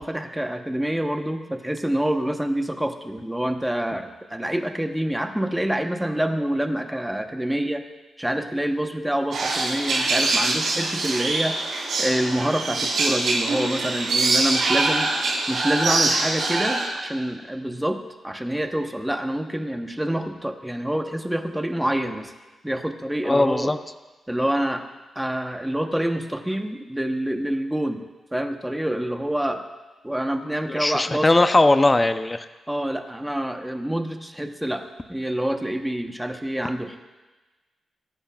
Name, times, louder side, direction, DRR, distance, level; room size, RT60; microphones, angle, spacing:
voice 1, 0.0-7.8 8.2-11.6 12.0-15.1 15.5-18.0 18.2-22.3 22.6-23.7 24.3-24.8 25.2-28.0 28.3-29.6 30.0-31.3 32.7-34.8 35.1-37.0, right 1 dB, 5° right, 5 dB, 0.9 m, -26 dB
sound 1, 9.3-16.9, right 3 dB, 80° right, 4.2 m, -24 dB
voice 2, 23.2-23.8 30.7-32.5, left 2 dB, 20° left, 10 dB, 0.6 m, -19 dB
24.0 x 11.5 x 2.4 m, 1.2 s
cardioid pair, 110°, 0 cm